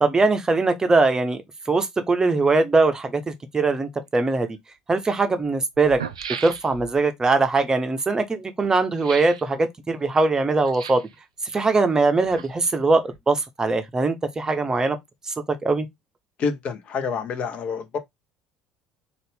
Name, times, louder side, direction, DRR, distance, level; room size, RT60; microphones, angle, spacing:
voice 1, 0.0-1.4 1.7-4.5 4.9-6.0 6.4-11.0 11.5-15.0 15.6-15.9, right 3 dB, 20° right, 0.7 m, -21 dB
sound 1, 4.5-4.6 5.4-5.5 5.8-7.0 9.0-9.5 10.6-11.2 12.0-12.8 13.1-13.2, right 7 dB, 75° right, 0.4 m, -36 dB
voice 2, 16.4-18.0, left 5 dB, 45° left, 0.8 m, -27 dB
4.0 x 2.5 x 3.5 m
figure-of-eight pair, 60°, 3 cm